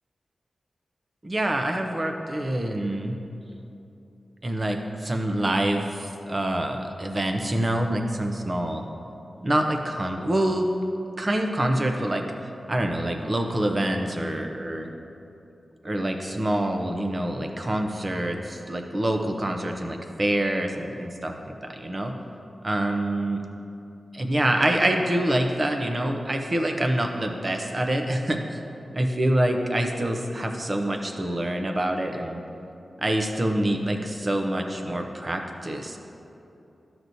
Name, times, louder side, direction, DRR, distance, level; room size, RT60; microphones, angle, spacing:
voice 1, 1.2-3.2 4.4-8.9 9.4-10.7 11.2-14.9 15.8-21.3 21.6-22.1 22.6-23.4 24.1-28.6 28.9-32.4 33.0-36.0, right 1 dB, 30° right, 4 dB, 0.7 m, -26 dB
13.0 x 6.0 x 2.7 m, 2.8 s
wide cardioid pair, 100°, 0 cm